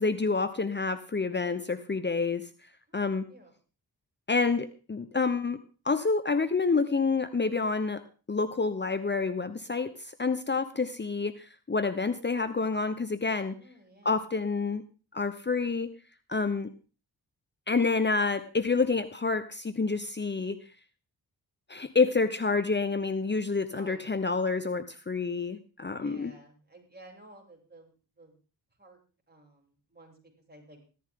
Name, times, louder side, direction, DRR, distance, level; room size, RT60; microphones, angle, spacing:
voice 1, 0.0-3.3 4.3-13.6 14.0-14.8 15.1-15.9 16.3-16.7 17.7-20.6 21.7-26.3, left 4 dB, 25° left, 11 dB, 1.0 m, -28 dB
voice 2, 2.9-3.5 13.4-14.2 23.7-24.4 25.9-28.4 28.8-29.0 29.3-30.2 30.5-30.8, right 1 dB, 25° right, -1 dB, 7.7 m, -54 dB
15.0 x 14.0 x 3.8 m, 0.37 s
cardioid pair, 50°, 40 cm